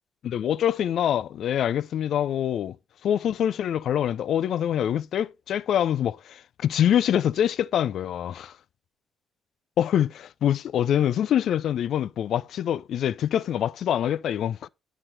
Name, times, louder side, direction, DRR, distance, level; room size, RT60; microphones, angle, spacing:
voice 1, 0.2-2.8 3.0-8.5 9.8-14.7, left 10 dB, 55° left, 0.4 m, -25 dB
10.0 x 5.8 x 4.1 m
figure-of-eight pair, 40°, 0 cm